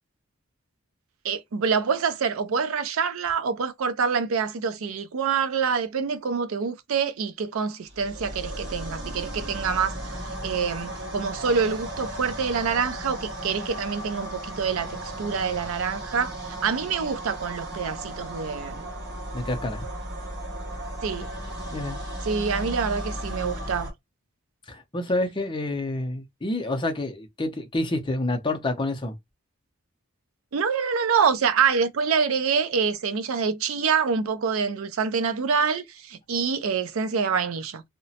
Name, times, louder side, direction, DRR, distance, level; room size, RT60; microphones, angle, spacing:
voice 1, 1.2-10.0 10.4-18.8 21.0-21.3 22.3-23.9 30.5-37.8, right 6 dB, 75° right, 0.4 m, -26 dB
sound 1, 7.9-23.9, right 1 dB, 55° right, 1.4 m, -35 dB
voice 2, 19.3-19.8 21.7-22.0 24.7-29.2, left 2 dB, 20° left, 0.5 m, -28 dB
2.8 x 2.1 x 2.7 m
head